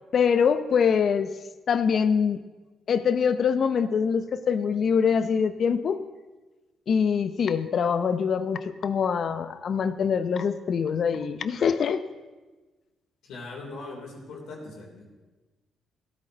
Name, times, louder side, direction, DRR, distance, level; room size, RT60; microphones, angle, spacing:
voice 1, 0.1-1.3 1.7-2.4 2.9-6.0 6.9-12.0, left 6 dB, 55° left, 11 dB, 0.7 m, -24 dB
voice 2, 13.2-15.0, left 3 dB, 80° left, -2 dB, 3.2 m, -40 dB
17.0 x 8.6 x 4.0 m, 1.2 s
cardioid pair, 90°, 0 cm